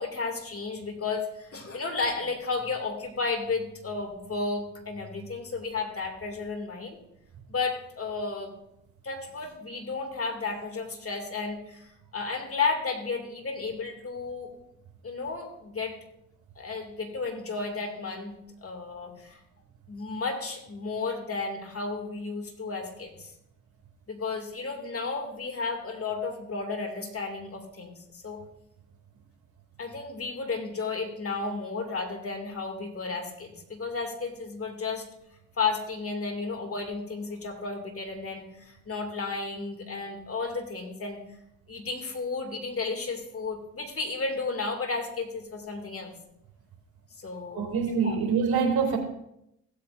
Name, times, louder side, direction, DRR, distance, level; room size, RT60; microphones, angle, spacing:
voice 1, 0.0-7.0 7.5-8.5 9.0-14.5 15.0-15.9 16.6-18.4 18.6-19.4 19.9-23.3 24.1-28.4 29.8-35.0 35.6-41.2 41.7-46.1 47.2-47.6 48.0-48.2, left 4 dB, 30° left, 4 dB, 2.5 m, -33 dB
voice 2, 47.5-49.0, right 5 dB, 60° right, 2 dB, 2.7 m, -25 dB
16.0 x 8.5 x 2.6 m, 0.79 s
hypercardioid pair, 60°, 42 cm